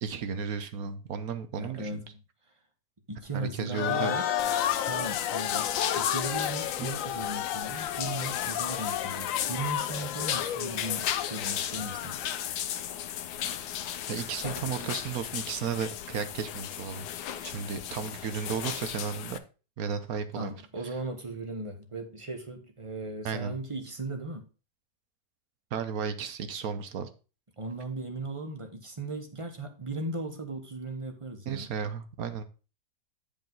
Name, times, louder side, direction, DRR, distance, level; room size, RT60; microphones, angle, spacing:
voice 1, 0.0-2.0 3.3-4.1 6.8-6.9 14.1-17.1 17.4-19.4 19.8-20.6 23.2-23.5 25.7-27.1 31.4-32.4, right 6 dB, 65° right, 1.3 m, -34 dB
voice 2, 1.5-2.1 3.1-4.3 4.8-12.2 20.3-24.4 27.6-31.7, right 2 dB, 25° right, 0.9 m, -37 dB
sound 1, 3.7-12.5, left 10 dB, 70° left, 0.8 m, -32 dB
sound 2, 4.4-19.4, left 10 dB, 85° left, 1.3 m, -35 dB
9.2 x 5.2 x 3.9 m
omnidirectional pair, 1.8 m